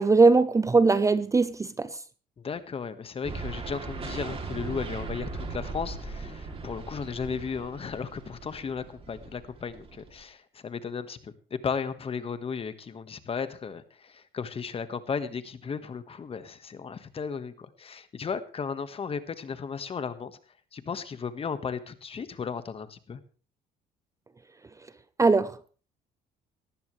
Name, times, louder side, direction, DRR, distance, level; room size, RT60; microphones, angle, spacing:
voice 1, 0.0-1.9 25.2-25.5, right 3 dB, 20° right, 0.7 m, -20 dB
voice 2, 2.4-20.4 20.7-23.2, left 6 dB, 35° left, 1.5 m, -35 dB
sound 1, 3.2-10.2, right 4 dB, 35° right, 2.9 m, -39 dB
19.0 x 14.5 x 3.3 m
cardioid pair, 110°, 17 cm